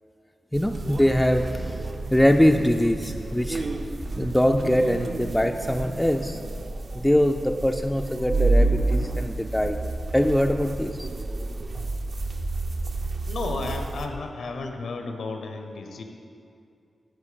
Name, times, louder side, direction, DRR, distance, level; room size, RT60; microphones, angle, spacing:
voice 1, 0.5-3.6 4.2-6.4 6.9-9.8 10.1-11.1, equal, 5° left, 5 dB, 0.3 m, -23 dB
sound 1, 0.5-14.1, right 2 dB, 55° right, 0.6 m, -29 dB
voice 2, 13.3-16.0, left 3 dB, 85° left, 5 dB, 0.8 m, -33 dB
12.5 x 4.5 x 5.1 m, 2.5 s
wide cardioid pair, 90°, 0 cm